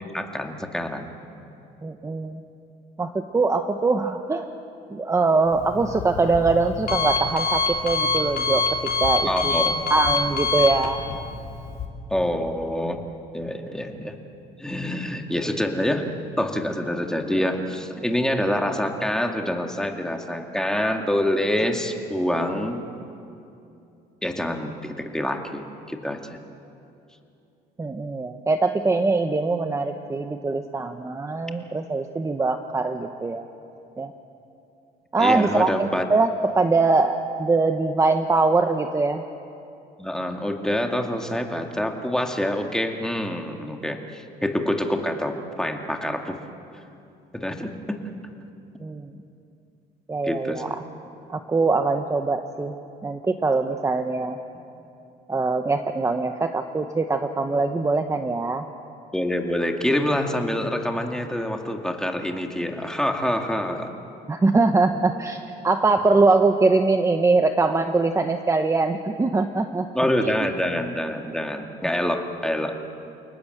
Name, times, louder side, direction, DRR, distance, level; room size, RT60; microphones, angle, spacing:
voice 1, 0.1-1.1 9.2-9.9 10.6-10.7 12.1-13.0 13.3-14.2 14.6-16.1 16.4-22.8 24.2-26.2 35.2-36.1 40.0-46.4 47.3-48.1 50.2-50.7 59.1-63.9 69.9-72.7, left 1 dB, 5° left, 3 dB, 2.2 m, -26 dB
voice 2, 1.8-2.4 3.0-4.5 4.9-8.6 9.0-9.5 9.9-11.0 27.8-33.4 34.0-34.1 35.1-39.2 48.8-49.1 50.1-50.8 51.3-52.8 53.0-54.4 55.3-58.7 64.3-65.4 65.6-69.9, right 3 dB, 15° right, 6 dB, 1.0 m, -22 dB
Alarm, 5.5-11.9, left 4 dB, 60° left, 4.0 m, -26 dB
29.0 x 19.0 x 8.0 m, 2.7 s
cardioid pair, 110°, 17 cm